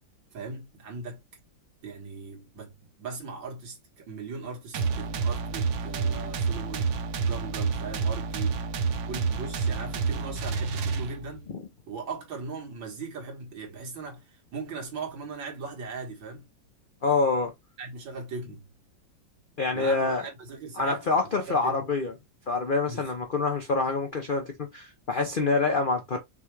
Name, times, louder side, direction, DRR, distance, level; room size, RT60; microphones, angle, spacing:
voice 1, 0.3-1.2 1.8-8.6 9.0-11.5 11.9-16.5 17.8-18.6 19.7-21.0 21.4-21.8 22.9-23.1, right 4 dB, 85° right, 2.4 m, -39 dB
sound 1, 4.7-11.4, right 5 dB, 65° right, 1.2 m, -29 dB
voice 2, 17.0-17.5 19.6-20.2 20.8-22.1 22.5-26.2, left 3 dB, 70° left, 0.5 m, -26 dB
5.9 x 2.3 x 3.1 m
omnidirectional pair, 2.0 m